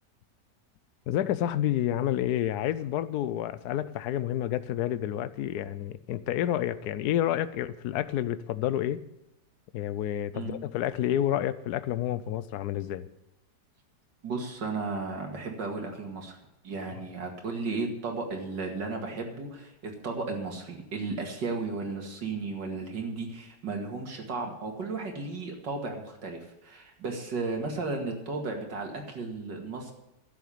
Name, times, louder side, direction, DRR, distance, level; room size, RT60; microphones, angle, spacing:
voice 1, 1.1-9.0 9.7-13.1, left 12 dB, 75° left, 1.1 m, -29 dB
voice 2, 14.2-16.4 16.6-29.9, right 3 dB, 85° right, 2.8 m, -34 dB
11.5 x 7.6 x 8.7 m
omnidirectional pair, 1.9 m